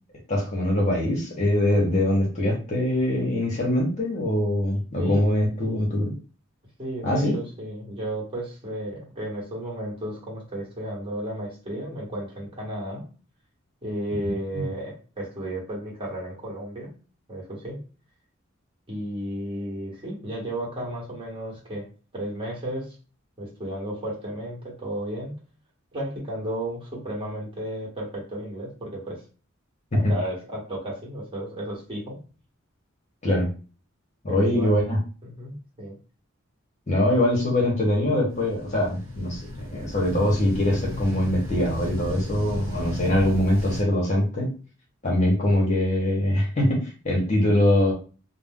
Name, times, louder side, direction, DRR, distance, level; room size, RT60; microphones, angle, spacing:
voice 1, 0.3-6.1 7.0-7.4 14.5-14.6 29.9-30.1 33.2-33.5 34.2-35.0 36.9-44.5 45.0-47.9, left 1 dB, 35° left, -2 dB, 0.9 m, -23 dB
voice 2, 6.8-13.0 13.8-16.9 17.3-17.8 18.9-21.9 22.1-23.0 23.4-25.3 25.9-29.2 29.9-32.2 34.3-34.8 35.2-35.9, right 1 dB, 25° right, -4 dB, 1.1 m, -33 dB
sound 1, 38.3-43.8, left 2 dB, 65° right, 0.9 m, -34 dB
2.4 x 2.0 x 3.6 m, 0.36 s
head